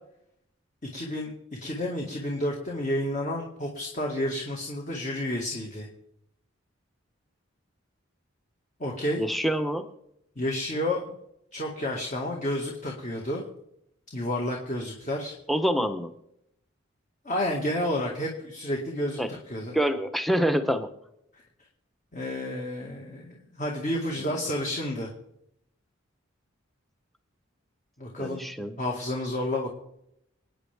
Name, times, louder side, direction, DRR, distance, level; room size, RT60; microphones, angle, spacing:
voice 1, 0.9-1.3 1.6-5.9 8.8-9.2 10.4-11.2 11.5-13.4 14.1-15.3 17.3-19.8 22.1-25.1 28.0-28.4 28.8-29.7, left 1 dB, 35° left, -1 dB, 1.9 m, -30 dB
voice 2, 9.2-9.9 15.5-16.1 19.2-19.3 19.7-20.9 24.2-24.3 28.2-28.8, equal, ahead, 8 dB, 0.8 m, -26 dB
26.5 x 9.2 x 3.5 m, 0.79 s
head